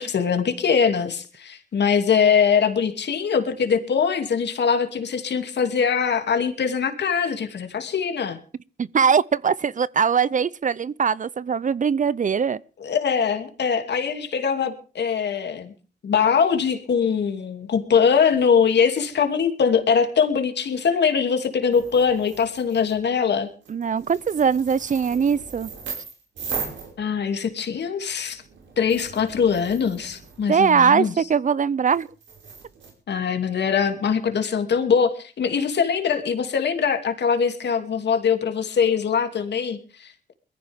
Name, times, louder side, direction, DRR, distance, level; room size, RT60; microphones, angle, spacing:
voice 1, 0.0-8.4 12.8-15.7 16.0-23.5 27.0-28.4 28.8-31.1 33.1-40.3, left 6 dB, 65° left, 2.8 m, -22 dB
voice 2, 8.8-12.6 23.7-25.7 30.5-32.1, right 6 dB, 45° right, 0.6 m, -21 dB
sound 1, 21.7-23.0 23.6-27.5 28.1-30.7 31.9-32.9, right 5 dB, 85° right, 5.5 m, -38 dB
22.0 x 14.5 x 3.6 m
cardioid pair, 85°, 19 cm